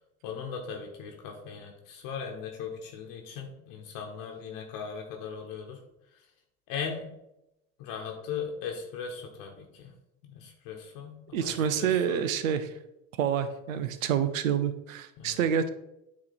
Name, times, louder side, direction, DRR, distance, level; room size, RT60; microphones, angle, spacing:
voice 1, 0.2-5.8 6.7-7.1 7.8-9.9 10.2-12.2 15.2-15.4, left 6 dB, 55° left, 2 dB, 1.2 m, -38 dB
voice 2, 11.3-12.7 13.2-15.7, right 8 dB, 75° right, 11 dB, 0.7 m, -27 dB
8.2 x 3.2 x 4.3 m, 0.86 s
hypercardioid pair, 75°, 40 cm